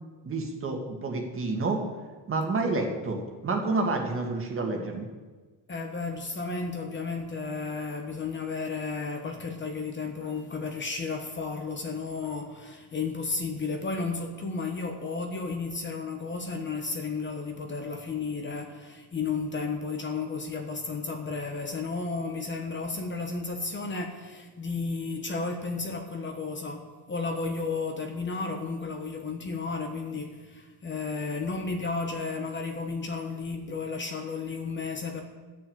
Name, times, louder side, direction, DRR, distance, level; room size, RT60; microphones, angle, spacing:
voice 1, 0.3-1.8 2.3-5.1, right 3 dB, 30° right, 2 dB, 1.9 m, -29 dB
voice 2, 5.7-35.2, left 4 dB, 25° left, 4 dB, 1.1 m, -33 dB
11.5 x 6.3 x 8.7 m, 1.4 s
cardioid pair, 140°, 42 cm